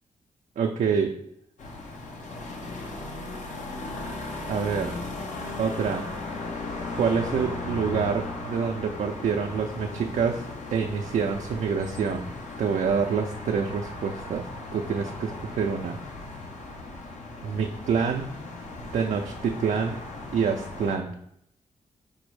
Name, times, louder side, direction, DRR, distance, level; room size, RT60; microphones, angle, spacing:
voice 1, 0.6-1.2 4.5-4.9 5.6-6.1 7.0-12.3 12.6-16.0 17.4-18.3 18.9-20.0 20.3-21.2, right 6 dB, 70° right, 2 dB, 0.4 m, -27 dB
sound 1, 1.6-21.0, left 2 dB, 70° left, 0.8 m, -37 dB
5.2 x 2.1 x 4.6 m, 0.73 s
cardioid pair, 70°, 13 cm